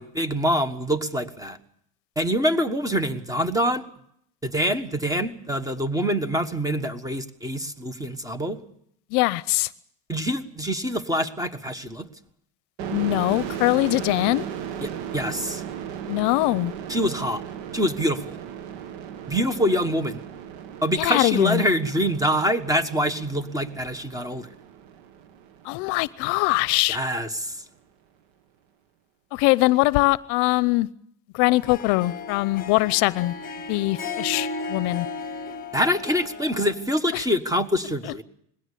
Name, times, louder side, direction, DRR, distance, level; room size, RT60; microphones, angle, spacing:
voice 1, 0.0-1.6 2.2-3.8 4.4-8.6 10.1-12.1 14.8-15.6 16.9-17.4 17.7-18.4 19.3-20.2 20.8-24.5 26.9-27.6 35.7-38.2, equal, 10° right, 1.4 m, -25 dB
voice 2, 9.1-9.7 12.9-14.5 16.1-16.7 21.0-21.6 25.6-27.0 29.3-30.9 31.3-33.3 33.7-35.1 37.1-37.2, left 20 dB, 60° left, 0.7 m, -22 dB
sound 1, 12.8-26.2, right 8 dB, 65° right, 1.7 m, -36 dB
Harp, 31.5-36.8, left 3 dB, 20° left, 1.6 m, -35 dB
21.0 x 16.5 x 8.4 m
supercardioid pair, 135°, 44 cm